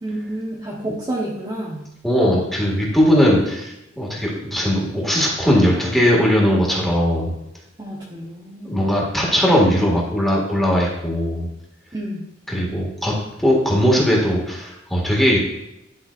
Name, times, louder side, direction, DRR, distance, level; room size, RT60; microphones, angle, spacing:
voice 1, 0.0-1.9 7.8-8.9 11.9-12.3, right 1 dB, 20° right, -4 dB, 0.9 m, -29 dB
voice 2, 2.0-7.3 8.6-11.5 12.5-13.1 13.4-15.4, equal, ahead, -3 dB, 1.8 m, -19 dB
11.0 x 5.4 x 2.5 m, 0.89 s
head